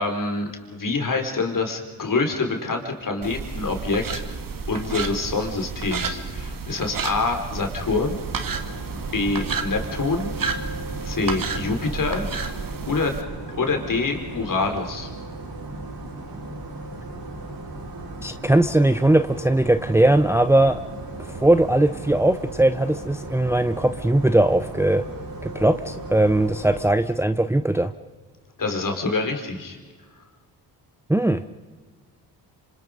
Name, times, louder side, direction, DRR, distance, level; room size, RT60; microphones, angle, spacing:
voice 1, 0.0-4.2 4.7-8.2 9.1-10.3 11.0-12.3 12.9-13.2 13.5-15.1 28.6-29.8, left 3 dB, 45° left, 4 dB, 4.6 m, -26 dB
sound 1, 3.2-13.2, right 5 dB, 50° right, 2.1 m, -31 dB
sound 2, 7.8-26.9, right 2 dB, 75° right, 7.1 m, -36 dB
voice 2, 18.2-20.8 21.4-25.0 25.4-27.9 31.1-31.4, right 1 dB, 5° right, 10 dB, 0.8 m, -19 dB
26.5 x 26.0 x 5.3 m, 1.4 s
supercardioid pair, 55°, 43 cm